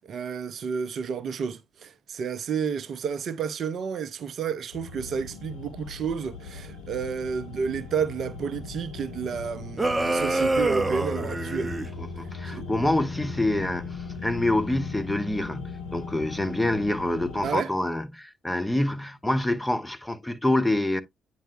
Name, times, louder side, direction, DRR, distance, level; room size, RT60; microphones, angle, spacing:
voice 1, 0.0-11.8 12.4-12.7 17.4-17.7, right 6 dB, 55° right, 0.5 m, -31 dB
sound 1, 4.7-17.5, left 4 dB, 75° left, 1.0 m, -38 dB
sound 2, 9.8-11.9, right 2 dB, 20° right, 0.8 m, -26 dB
voice 2, 12.0-21.0, left 1 dB, 10° left, 1.0 m, -26 dB
9.0 x 4.7 x 2.6 m
figure-of-eight pair, 45°, 0 cm